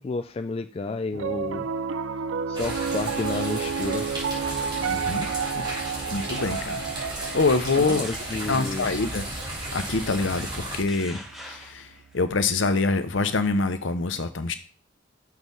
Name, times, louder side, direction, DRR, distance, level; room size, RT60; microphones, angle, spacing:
voice 1, 0.0-1.7 2.5-4.1 7.8-8.9, left 3 dB, 30° left, 9 dB, 0.3 m, -31 dB
Piano, 1.1-11.5, right 6 dB, 80° right, 0.4 m, -32 dB
sound 1, 2.5-10.8, right 1 dB, 25° right, 3.0 m, -34 dB
sound 2, 4.2-4.6 5.6-6.0 6.3-6.7 7.3-7.4 7.9-8.3 9.4-9.5 10.5-12.2, equal, ahead, 1.5 m, -44 dB
voice 2, 4.9-5.3 5.6-5.7 6.1-6.8 7.3-8.1 8.5-9.2 9.7-11.9 12.1-14.5, left 3 dB, 75° left, 10 dB, 0.8 m, -25 dB
6.4 x 4.7 x 5.5 m, 0.37 s
head